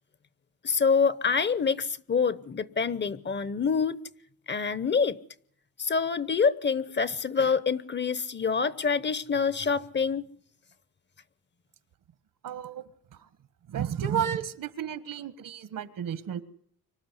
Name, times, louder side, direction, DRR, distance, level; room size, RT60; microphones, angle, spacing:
voice 1, 0.6-4.0 4.5-5.2 5.8-10.2, left 5 dB, 30° left, 0.9 m, -26 dB
voice 2, 12.4-12.8 13.7-16.4, right 8 dB, 65° right, 1.5 m, -32 dB
24.5 x 12.0 x 9.8 m
cardioid pair, 100°, 34 cm